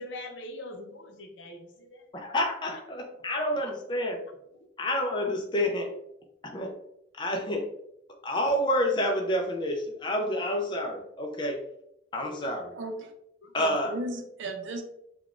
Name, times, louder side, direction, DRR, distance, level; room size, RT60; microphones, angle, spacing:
voice 1, 0.0-2.1 3.6-3.7 13.4-13.5, left 1 dB, 75° left, 3 dB, 0.6 m, -42 dB
voice 2, 2.1-4.2 4.8-5.9 6.4-6.7 7.2-7.7 8.2-11.6 12.1-12.7 13.5-14.0, left 1 dB, 25° left, 1 dB, 0.4 m, -29 dB
voice 3, 12.2-13.1 13.6-14.8, right 2 dB, 75° right, 5 dB, 0.5 m, -36 dB
3.8 x 2.3 x 2.3 m, 0.77 s
head